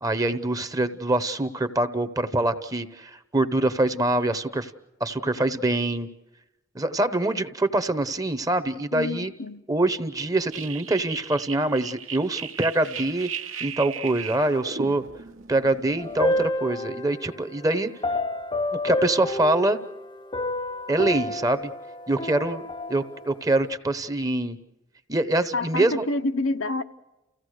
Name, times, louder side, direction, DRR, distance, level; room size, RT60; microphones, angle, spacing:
voice 1, 0.0-4.7 5.0-6.1 6.7-9.3 9.7-13.3 13.6-15.0 15.5-17.9 18.7-19.8 20.9-21.6 22.1-24.6 25.1-26.0, right 2 dB, 15° right, 0.9 m, -24 dB
voice 2, 8.9-9.6 25.5-26.8, left 2 dB, 80° left, 0.9 m, -28 dB
sound 1, 10.5-16.5, right 7 dB, 70° right, 1.4 m, -37 dB
sound 2, 16.0-17.4 18.0-20.0 20.3-23.3, left 1 dB, 25° left, 0.7 m, -29 dB
29.5 x 16.0 x 6.5 m
head